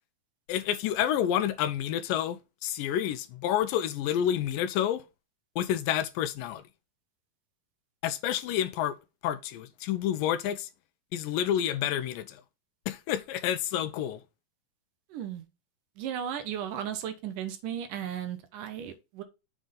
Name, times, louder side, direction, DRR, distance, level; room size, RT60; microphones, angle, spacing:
voice 1, 0.5-5.0 5.6-6.6 8.0-9.0 9.2-10.7 11.1-12.4 12.9-14.2, left 10 dB, 90° left, 2.3 m, -29 dB
voice 2, 15.1-15.4 16.0-19.2, right 9 dB, 75° right, 2.5 m, -35 dB
7.6 x 4.0 x 5.0 m
omnidirectional pair, 3.9 m